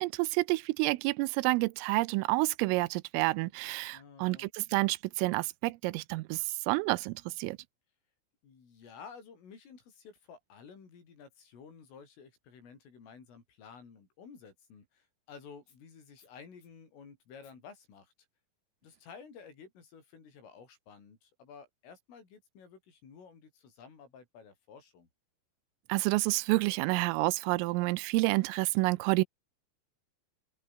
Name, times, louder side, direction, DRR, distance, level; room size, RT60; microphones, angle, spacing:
voice 1, 0.0-7.6 25.9-29.2, right 22 dB, 90° right, 3.4 m, -29 dB
voice 2, 3.9-4.5 8.4-18.1 18.8-25.1, left 6 dB, 80° left, 8.8 m, -53 dB
open air
omnidirectional pair, 5.8 m